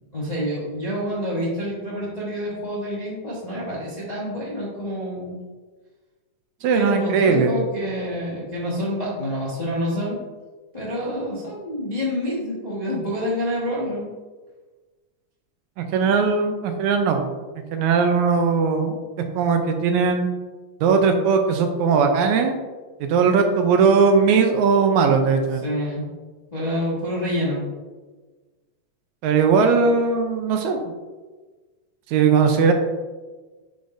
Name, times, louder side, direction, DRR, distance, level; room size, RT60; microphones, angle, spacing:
voice 1, 0.1-5.4 6.7-10.2 10.7-14.1 25.6-26.1 26.5-27.6, equal, 35° left, -7 dB, 0.6 m, -27 dB
voice 2, 6.6-7.5 15.8-17.3 17.7-19.0 19.4-20.3 20.8-22.6 23.0-25.6 29.2-30.8 32.1-32.7, right 5 dB, 80° right, 5 dB, 1.9 m, -19 dB
10.0 x 4.0 x 2.6 m, 1.3 s
omnidirectional pair, 3.5 m